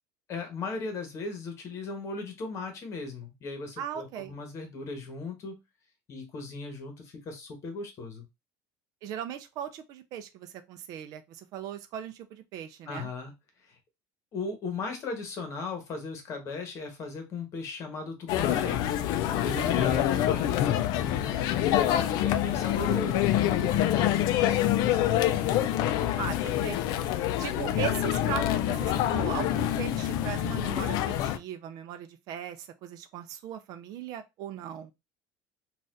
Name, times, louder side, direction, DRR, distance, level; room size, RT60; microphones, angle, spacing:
voice 1, 0.3-5.6 6.1-8.3 12.9-13.3 13.6-13.8 14.3-18.8 19.4-21.4 21.6-25.4, left 4 dB, 40° left, 1.1 m, -37 dB
voice 2, 3.8-4.3 9.0-13.1 19.6-20.2 26.2-26.8 27.4-34.9, right 10 dB, 55° right, 0.4 m, -38 dB
sound 1, 18.3-31.4, left 12 dB, 65° left, 0.4 m, -26 dB
4.0 x 2.4 x 2.5 m
cardioid pair, 155°, 8 cm